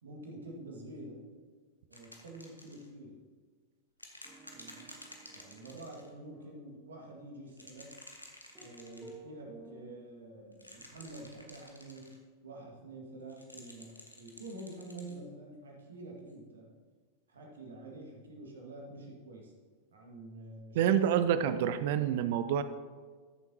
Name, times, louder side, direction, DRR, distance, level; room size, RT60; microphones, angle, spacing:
voice 1, 0.0-1.3 1.9-3.2 4.5-5.0 5.3-7.9 8.6-16.7 17.3-19.5 19.9-21.3, right 1 dB, 65° right, 0 dB, 1.8 m, -48 dB
sound 1, 1.9-2.9 4.0-6.1 7.5-9.2 10.5-12.2 13.3-15.2 16.3-16.4, left 1 dB, 90° left, 1.1 m, -52 dB
sound 2, 4.2-6.5 8.5-9.8, right 3 dB, 15° right, 1.9 m, -54 dB
voice 2, 20.7-22.6, right 9 dB, 50° right, 12 dB, 0.5 m, -27 dB
13.5 x 7.0 x 2.8 m, 1.5 s
figure-of-eight pair, 90°, 0 cm